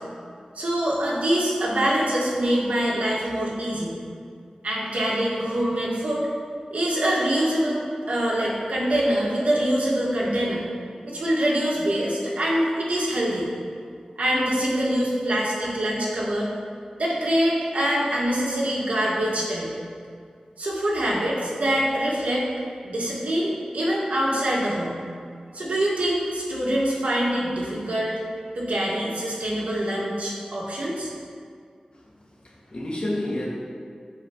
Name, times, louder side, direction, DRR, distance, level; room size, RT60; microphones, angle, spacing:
voice 1, 0.6-3.9 4.6-6.3 6.7-10.7 11.0-13.5 14.2-16.5 17.0-19.7 20.6-22.4 22.8-25.0 25.5-28.1 28.5-31.1, right 1 dB, 90° right, -5 dB, 1.9 m, -24 dB
voice 2, 31.9-33.5, left 1 dB, 50° left, -4 dB, 2.0 m, -31 dB
14.5 x 4.8 x 3.1 m, 2.2 s
wide cardioid pair, 75°, 2 cm